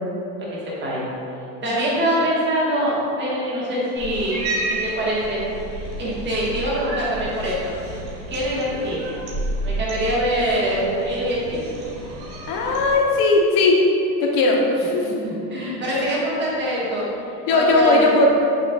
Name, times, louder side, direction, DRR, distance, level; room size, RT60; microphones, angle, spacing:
voice 1, 0.5-1.0 1.6-5.4 5.7-7.7 8.3-9.2 9.6-11.6 15.1-17.0 17.5-18.3, equal, 25° right, -6 dB, 1.3 m, -24 dB
Cat, 3.9-12.9, right 1 dB, 75° right, 1.3 m, -31 dB
voice 2, 12.5-13.7 14.2-15.1 16.0-16.1 17.5-18.3, left 2 dB, 55° left, 0 dB, 0.9 m, -18 dB
7.2 x 3.1 x 2.3 m, 2.8 s
supercardioid pair, 120°, 46 cm